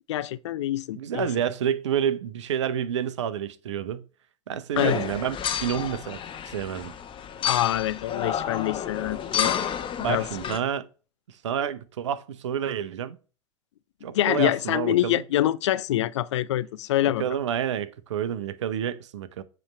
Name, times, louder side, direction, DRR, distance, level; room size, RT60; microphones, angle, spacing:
voice 1, 0.1-1.3 4.8-5.0 7.4-9.6 10.1-10.3 14.1-17.2, left 13 dB, 70° left, 0.4 m, -25 dB
voice 2, 1.0-4.0 4.5-6.2 6.5-6.9 10.0-10.9 11.4-13.2 14.0-15.2 17.0-19.4, right 9 dB, 75° right, 0.6 m, -29 dB
sound 1, 4.8-10.6, left 9 dB, 35° left, 0.9 m, -30 dB
7.5 x 3.2 x 5.1 m
figure-of-eight pair, 75°, 15 cm